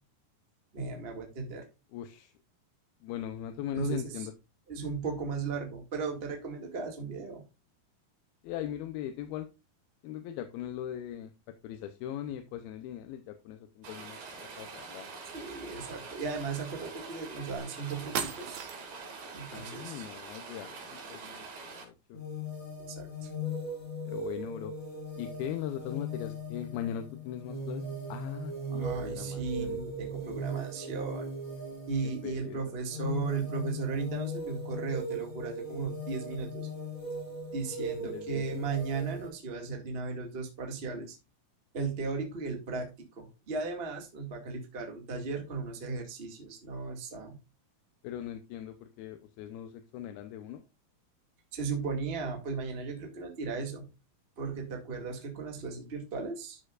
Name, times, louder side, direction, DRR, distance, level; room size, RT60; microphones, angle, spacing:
voice 1, 0.7-1.7 3.7-4.3 4.7-7.4 15.3-18.6 19.3-20.1 22.9-23.3 28.7-31.3 31.9-36.7 37.5-41.2 41.7-47.4 51.5-53.9 54.4-56.6, right 4 dB, 20° right, 2 dB, 1.6 m, -36 dB
voice 2, 1.9-2.3 3.0-4.3 8.4-9.5 10.0-15.1 19.5-22.2 24.1-24.7 25.2-29.8 32.0-32.8 38.0-38.4 48.0-50.6, left 10 dB, 90° left, 7 dB, 2.7 m, -40 dB
Rain, 13.8-21.8, right 4 dB, 85° right, 4.8 m, -45 dB
sound 1, 17.6-17.7 18.1-19.1, right 7 dB, 60° right, 2.0 m, -36 dB
sound 2, 22.1-39.3, equal, 15° left, 3.3 m, -38 dB
12.0 x 6.5 x 2.5 m, 0.27 s
omnidirectional pair, 4.3 m